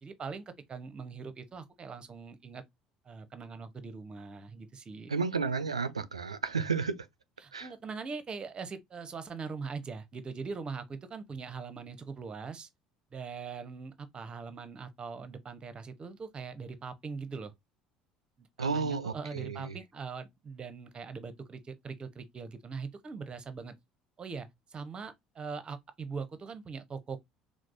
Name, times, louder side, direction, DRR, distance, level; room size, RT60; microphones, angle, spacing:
voice 1, 0.0-2.6 3.1-5.1 7.4-12.7 13.1-17.5 18.4-23.7 24.2-27.2, right 5 dB, 30° right, 0.7 m, -41 dB
voice 2, 5.1-7.1 7.5-7.7 18.6-19.7, right 5 dB, 85° right, 0.3 m, -32 dB
4.6 x 2.0 x 2.5 m
figure-of-eight pair, 60°, 3 cm